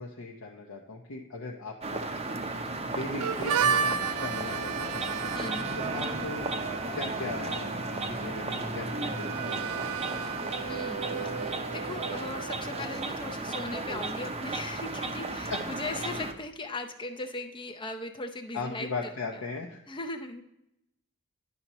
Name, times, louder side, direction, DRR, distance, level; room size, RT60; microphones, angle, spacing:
voice 1, 0.0-2.1 2.8-5.0 5.8-6.6 6.9-7.7 8.0-10.1 15.5-15.6 18.5-19.8, left 3 dB, 70° left, -2 dB, 0.8 m, -38 dB
sound 1, 1.8-16.3, right 2 dB, 30° right, 0.6 m, -34 dB
Harmonica, 3.2-12.8, right 7 dB, 85° right, 0.4 m, -34 dB
Brass instrument, 4.0-12.4, left 5 dB, 45° left, 1.1 m, -46 dB
voice 2, 5.3-5.7 10.7-19.4 19.9-20.4, left 2 dB, 20° left, 5 dB, 0.6 m, -38 dB
10.5 x 5.6 x 3.0 m, 0.82 s
head